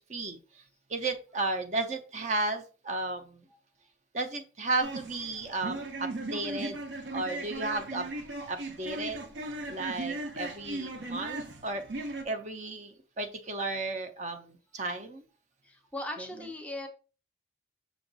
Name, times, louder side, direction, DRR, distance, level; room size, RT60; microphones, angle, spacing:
voice 1, 0.9-3.4 4.1-6.8 7.1-8.1 8.5-9.2 9.7-11.8 12.2-15.2, right 2 dB, 40° right, 7 dB, 0.5 m, -34 dB
sound 1, 4.8-12.2, right 2 dB, 85° right, 0.8 m, -37 dB
voice 2, 15.6-16.9, left 1 dB, 10° left, 5 dB, 0.6 m, -39 dB
6.0 x 2.3 x 3.9 m, 0.36 s
head